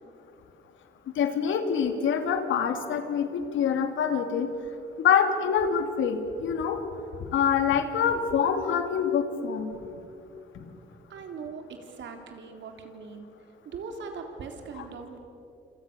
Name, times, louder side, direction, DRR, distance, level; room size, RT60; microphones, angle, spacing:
voice 1, 1.1-4.5 5.0-6.8 7.3-9.7 10.5-10.7, left 7 dB, 80° left, 6 dB, 2.9 m, -25 dB
voice 2, 11.1-13.3 13.7-15.2, right 5 dB, 70° right, 4 dB, 3.9 m, -40 dB
27.5 x 27.0 x 7.1 m, 2.6 s
cardioid pair, 90°, 20 cm